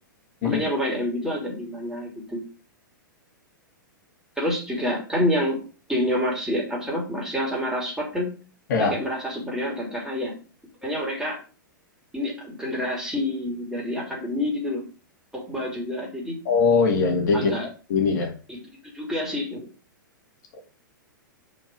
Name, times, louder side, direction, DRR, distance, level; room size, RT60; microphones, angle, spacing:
voice 1, 0.4-2.4 4.4-5.6 5.9-8.3 8.7-10.3 10.8-11.4 12.1-14.8 15.3-16.4 17.3-17.7 18.5-18.6 18.8-19.6, left 1 dB, 5° right, -2 dB, 3.1 m, -28 dB
voice 2, 16.5-17.5 17.9-18.3, left 4 dB, 60° left, 2 dB, 2.1 m, -21 dB
5.7 x 4.4 x 6.1 m, 0.36 s
hypercardioid pair, 105°, 11 cm